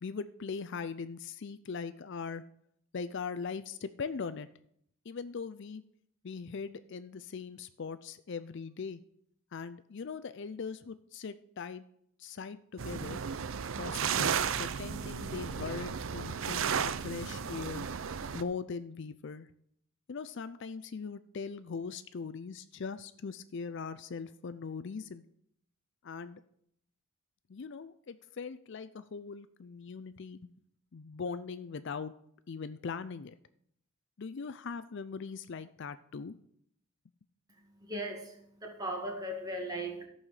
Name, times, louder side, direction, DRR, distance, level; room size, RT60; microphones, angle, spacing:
voice 1, 0.0-2.4 2.9-4.5 5.1-5.8 6.2-9.0 9.5-11.8 12.2-13.2 13.8-17.9 18.3-19.5 20.1-25.2 26.0-26.4 27.5-30.5 30.9-32.1 32.5-33.3 34.2-36.3, left 5 dB, 55° left, 13 dB, 0.4 m, -40 dB
sound 1, 12.8-18.4, right 7 dB, 65° right, 0.5 m, -34 dB
voice 2, 37.8-40.1, right 1 dB, 15° right, 1 dB, 1.9 m, -38 dB
14.0 x 5.6 x 6.5 m, 0.71 s
head